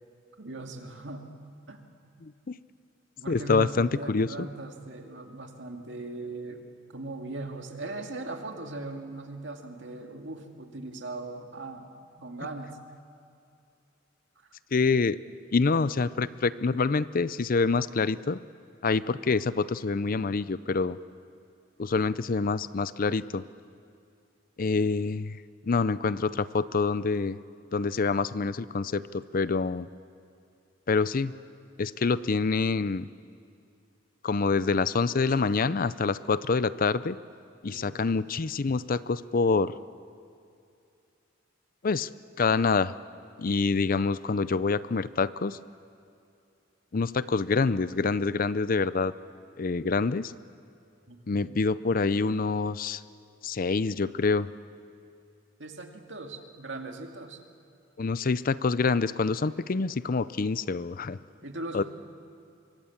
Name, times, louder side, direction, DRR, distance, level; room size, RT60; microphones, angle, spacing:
voice 1, 0.4-1.3 1.7-2.1 3.2-11.9 12.2-12.8 37.7-37.9 51.1-51.2 55.6-57.4 61.4-61.8, right 2 dB, 65° right, 3 dB, 2.3 m, -39 dB
voice 2, 2.2-2.6 3.3-4.3 14.7-15.2 15.5-18.4 18.8-21.0 21.8-23.4 24.6-25.4 25.7-27.4 27.7-29.9 30.9-31.3 31.8-33.1 34.2-37.2 37.6-39.7 41.8-42.1 42.4-42.9 43.4-45.6 46.9-49.1 49.6-50.3 51.3-53.0 53.4-54.5 58.0-61.2 61.7-61.8, left 4 dB, 45° left, 16 dB, 0.5 m, -26 dB
26.0 x 23.5 x 7.3 m, 2.5 s
head